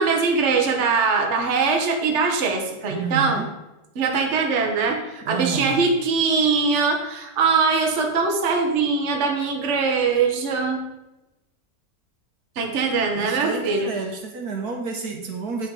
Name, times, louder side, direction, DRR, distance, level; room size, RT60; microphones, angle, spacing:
voice 1, 0.0-3.4 3.9-10.8 12.6-13.9, right 4 dB, 45° right, 2 dB, 1.3 m, -22 dB
voice 2, 2.9-3.5 5.2-5.7 13.1-15.7, right 4 dB, 60° right, 2 dB, 1.5 m, -30 dB
9.0 x 6.2 x 4.8 m, 0.96 s
omnidirectional pair, 1.9 m